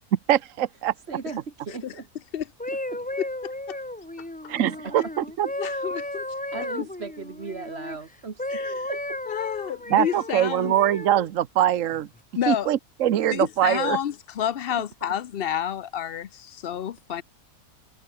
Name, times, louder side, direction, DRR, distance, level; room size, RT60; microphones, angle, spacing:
voice 1, 0.1-0.9 4.5-5.5 9.9-12.1 12.5-14.0, right 11 dB, 65° right, 1.2 m, -23 dB
voice 2, 1.1-2.0 2.9-3.0 4.5-5.1 6.4-9.2 14.7-15.1, right 4 dB, 45° right, 1.9 m, -38 dB
sound 1, 2.4-8.0 8.4-11.3 11.9-12.2, left 1 dB, 10° left, 0.6 m, -34 dB
voice 3, 5.6-6.2 6.5-6.6 8.5-8.7 9.3-10.7 12.4-12.7 13.3-17.2, left 9 dB, 50° left, 0.8 m, -29 dB
omnidirectional pair, 1.5 m